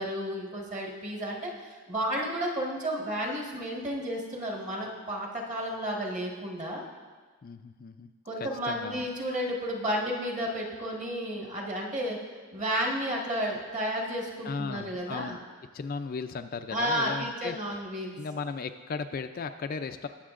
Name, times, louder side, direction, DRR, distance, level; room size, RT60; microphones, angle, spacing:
voice 1, 0.0-6.8 8.2-12.2 12.5-15.4 16.7-18.2, equal, 35° right, -1 dB, 1.4 m, -32 dB
voice 2, 7.4-8.1 8.4-9.1 14.4-15.4 15.7-17.8 18.2-20.1, left 5 dB, 40° left, 8 dB, 0.3 m, -36 dB
20.0 x 7.2 x 2.5 m, 1.5 s
head